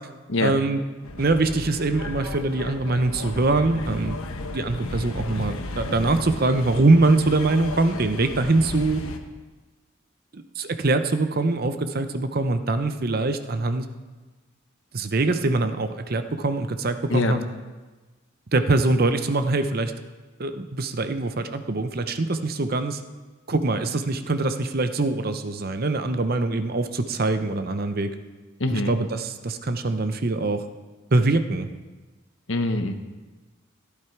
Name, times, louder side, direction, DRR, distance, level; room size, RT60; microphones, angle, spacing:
voice 1, 0.4-0.8 1.2-4.2 4.5-9.0 10.3-13.9 14.9-17.4 18.5-19.9 20.4-23.0 23.5-28.1 28.7-30.6 31.1-31.7, right 2 dB, 45° right, 9 dB, 0.7 m, -23 dB
sound 1, 1.0-9.2, left 2 dB, 85° left, 1.1 m, -34 dB
voice 2, 28.6-29.0 32.5-32.9, left 2 dB, 65° left, 7 dB, 1.1 m, -24 dB
15.5 x 11.0 x 4.6 m, 1.2 s
head